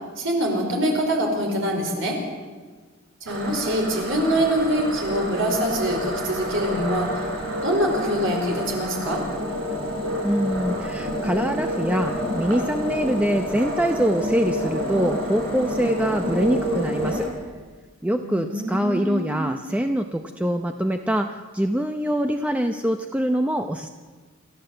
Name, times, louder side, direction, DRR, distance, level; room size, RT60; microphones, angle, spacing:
voice 1, 0.2-2.2 3.2-7.3 7.6-9.3 18.2-19.5, equal, 65° right, 2 dB, 4.9 m, -24 dB
sound 1, 3.3-17.3, equal, 85° right, 7.9 m, -28 dB
voice 2, 10.2-17.3 18.0-23.9, equal, 5° right, 5 dB, 0.7 m, -24 dB
27.0 x 14.0 x 7.9 m, 1.4 s
head